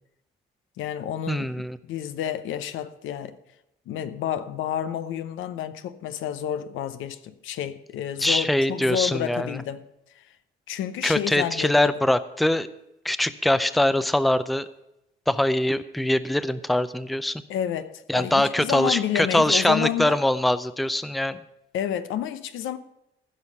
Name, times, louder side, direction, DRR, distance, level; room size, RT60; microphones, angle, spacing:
voice 1, 0.8-3.4 3.9-9.9 10.1-10.3 10.7-11.9 17.5-20.2 21.7-22.8, left 10 dB, 85° left, 0.8 m, -30 dB
voice 2, 1.3-1.8 8.2-9.6 11.0-12.7 13.0-14.7 15.3-17.4 18.1-21.4, left 1 dB, ahead, 0.5 m, -23 dB
15.5 x 5.5 x 6.6 m
cardioid pair, 90°, 20 cm